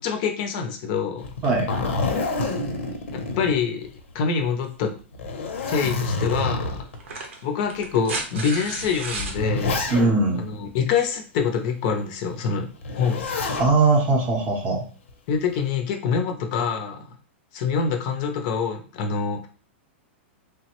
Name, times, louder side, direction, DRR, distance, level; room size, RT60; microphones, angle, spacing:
voice 1, 0.0-1.3 3.1-3.9 4.1-4.9 5.7-6.8 7.4-9.8 10.4-13.3 15.3-17.2 17.5-19.5, left 6 dB, 40° left, 4 dB, 0.5 m, -25 dB
Zipper (clothing), 1.2-4.1 4.5-4.6 5.1-7.0 7.7-7.8 8.8-10.4 12.8-13.7 15.1-15.6, left 3 dB, 90° left, 0.7 m, -28 dB
sound 1, 5.8-5.9 6.9-9.4 10.9-11.0, right 3 dB, 90° right, 0.8 m, -33 dB
voice 2, 9.9-10.4 13.6-14.8, right 3 dB, 20° right, 1 dB, 0.6 m, -20 dB
3.2 x 2.0 x 2.9 m, 0.39 s
supercardioid pair, 160°, 7 cm